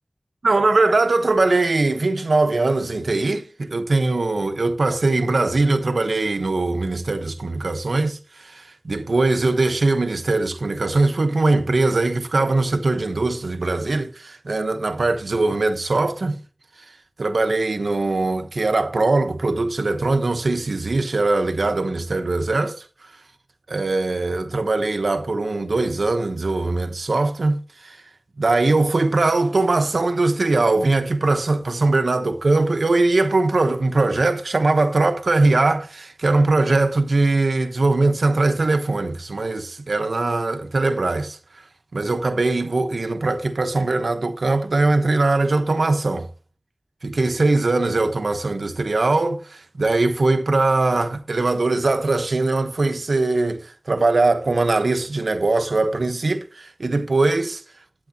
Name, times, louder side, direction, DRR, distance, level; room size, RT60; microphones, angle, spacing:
voice 1, 0.4-16.4 17.2-22.8 23.7-28.0 28.4-41.4 41.9-46.3 47.0-57.6, right 3 dB, 85° right, 1.0 m, -21 dB
12.5 x 9.9 x 2.8 m
wide cardioid pair, 55°, 0 cm